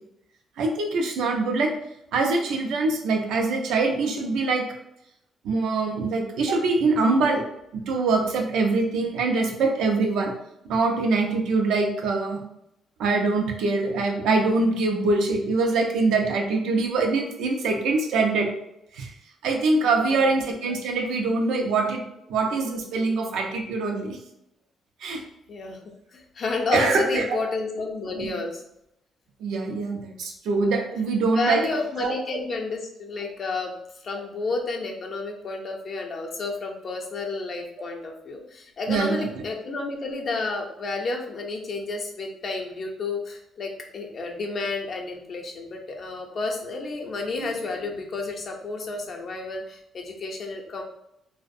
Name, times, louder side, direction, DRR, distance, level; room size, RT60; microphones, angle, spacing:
voice 1, 0.6-1.7 2.1-4.6 5.4-7.4 7.7-10.3 10.6-12.4 13.0-18.5 18.9-19.1 19.4-22.0 22.3-24.2 25.0-25.2 26.7-27.4 28.1-28.3 29.4-31.6 32.0-32.1 38.9-39.3 47.4-47.6, right 3 dB, 85° right, 2 dB, 0.4 m, -24 dB
voice 2, 20.0-20.3 25.5-25.8 26.1-28.6 31.3-33.7 34.0-50.8, left 3 dB, 50° left, 1 dB, 0.5 m, -31 dB
2.4 x 2.1 x 2.5 m, 0.80 s
cardioid pair, 90°, 0 cm